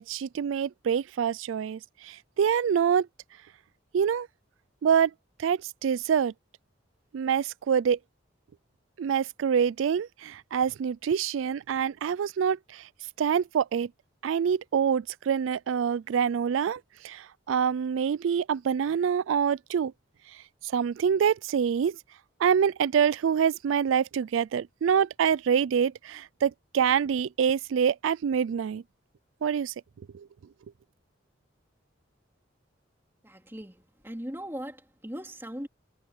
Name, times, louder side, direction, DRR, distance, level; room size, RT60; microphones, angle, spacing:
voice 1, 0.0-3.1 3.9-4.3 4.8-5.1 5.4-6.3 7.1-8.0 9.0-12.8 13.2-13.9 14.2-19.9 20.6-22.0 22.4-28.8 29.4-29.7 30.1-30.3, right 7 dB, 85° right, 0.3 m, -26 dB
voice 2, 33.2-35.7, equal, 10° right, 3.3 m, -39 dB
head